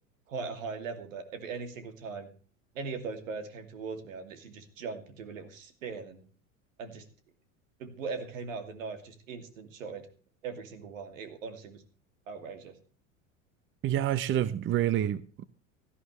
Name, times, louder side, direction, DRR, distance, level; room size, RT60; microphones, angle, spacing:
voice 1, 0.3-2.3 2.7-6.2 6.8-7.0 7.8-10.1 10.4-11.8 12.3-12.8, right 4 dB, 75° right, 2.6 m, -39 dB
voice 2, 13.8-15.5, right 11 dB, 30° right, 0.7 m, -28 dB
17.5 x 13.0 x 3.2 m
hypercardioid pair, 85°, 40 cm